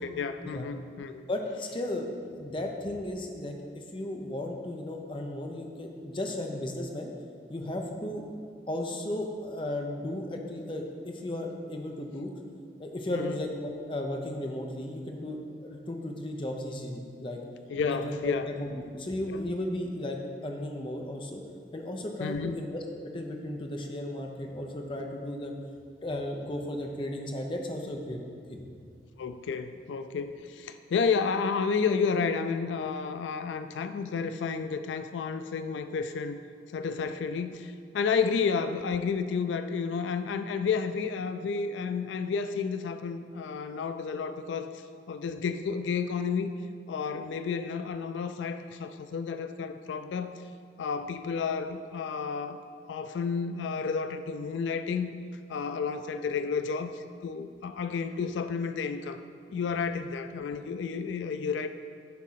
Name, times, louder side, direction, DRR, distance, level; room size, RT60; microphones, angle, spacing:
voice 1, 0.0-1.2 13.1-13.4 17.7-18.5 19.3-19.4 22.2-22.6 29.2-36.4 36.7-44.7 45.1-46.5 46.9-50.4 50.8-52.6 52.9-55.1 55.5-59.2 59.5-61.7, left 5 dB, 90° left, 9 dB, 0.3 m, -31 dB
voice 2, 1.3-3.5 3.9-7.1 7.5-8.2 8.7-12.3 12.8-17.4 17.8-20.2 20.4-21.4 21.7-25.5 26.0-28.2 28.5-28.6, left 1 dB, 25° left, 2 dB, 0.7 m, -35 dB
10.0 x 3.6 x 5.7 m, 2.3 s
head